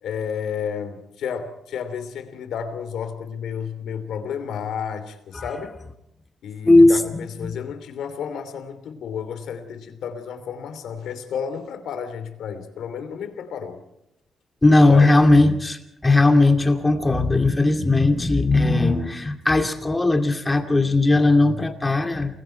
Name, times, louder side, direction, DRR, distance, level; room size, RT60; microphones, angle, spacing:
voice 1, 0.0-5.8 6.4-13.8 14.9-15.1, left 7 dB, 90° left, 9 dB, 2.9 m, -32 dB
voice 2, 6.6-7.6 14.6-22.4, left 2 dB, 15° left, 5 dB, 2.3 m, -18 dB
29.5 x 21.5 x 4.5 m, 0.82 s
cardioid pair, 115°, 0 cm